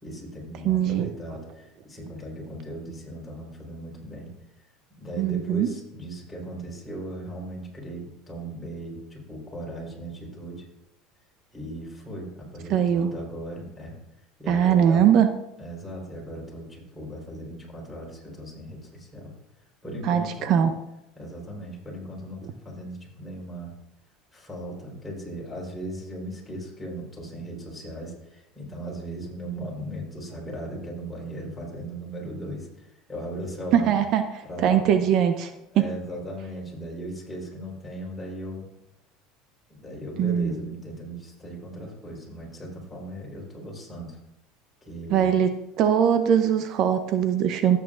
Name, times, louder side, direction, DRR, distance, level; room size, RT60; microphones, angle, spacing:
voice 1, 0.0-4.3 5.0-10.6 11.5-14.0 14.4-15.0 15.6-19.3 19.8-20.5 21.2-23.7 24.3-33.9 34.4-35.1 35.7-38.7 39.7-44.2 44.8-45.4, right 1 dB, 10° left, -3 dB, 4.2 m, -37 dB
voice 2, 0.6-1.1 5.2-5.7 12.7-13.1 14.5-15.3 20.0-20.7 33.7-34.2 34.6-35.8 40.2-40.5 45.1-45.5 45.8-47.8, right 9 dB, 55° right, 8 dB, 0.7 m, -21 dB
14.0 x 8.5 x 2.5 m, 0.89 s
supercardioid pair, 110°, 0 cm